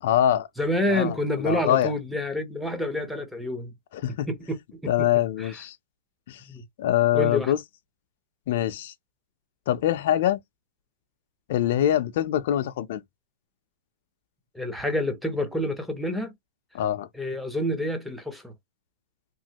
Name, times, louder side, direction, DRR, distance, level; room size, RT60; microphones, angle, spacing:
voice 1, 0.0-0.5 0.9-1.9 3.9-4.3 4.9-5.8 6.3-6.5 6.8-7.6 8.5-8.9 9.7-10.4 11.5-13.0 16.7-17.1, left 11 dB, 50° left, 0.4 m, -24 dB
voice 2, 0.6-3.7 4.3-5.1 5.4-5.5 6.5-6.6 7.1-7.5 14.5-16.3 17.1-18.5, left 1 dB, ahead, 0.6 m, -28 dB
3.0 x 2.4 x 2.8 m
hypercardioid pair, 160°, 0 cm